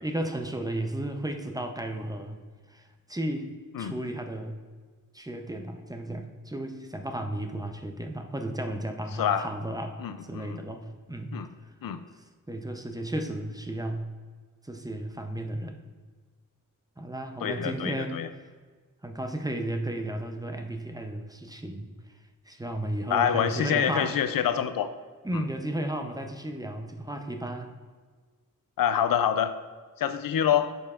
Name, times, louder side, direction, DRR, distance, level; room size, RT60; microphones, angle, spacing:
voice 1, 0.0-2.4 2.7-3.5 3.8-4.6 5.1-11.3 12.2-14.1 14.6-15.8 17.0-18.4 19.0-21.9 22.5-24.2 25.2-27.7, right 1 dB, 10° right, 5 dB, 0.6 m, -34 dB
voice 2, 9.2-9.5 10.0-10.6 11.3-11.5 11.8-12.0 17.4-18.3 23.1-24.9 25.3-25.4 28.8-29.6 30.0-30.7, left 9 dB, 80° left, 11 dB, 0.5 m, -26 dB
10.0 x 5.4 x 2.4 m, 1.5 s
wide cardioid pair, 80°, 34 cm